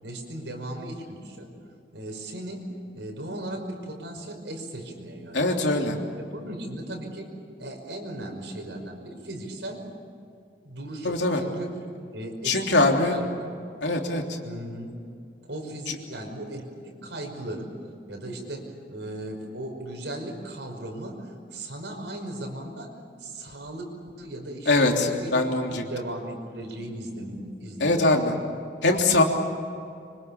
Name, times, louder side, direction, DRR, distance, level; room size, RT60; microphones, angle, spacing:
voice 1, 0.0-1.5 1.9-2.7 2.9-7.3 7.6-9.8 10.6-11.7 12.1-13.5 14.4-14.9 15.5-17.8 18.1-22.9 23.2-28.4, right 1 dB, 85° right, 3 dB, 5.5 m, -37 dB
voice 2, 5.3-5.9 11.0-11.4 12.4-13.2 13.8-14.4 24.7-25.8 27.8-28.3 28.8-29.2, left 2 dB, 80° left, 2 dB, 3.4 m, -22 dB
25.5 x 25.0 x 7.2 m, 2.5 s
head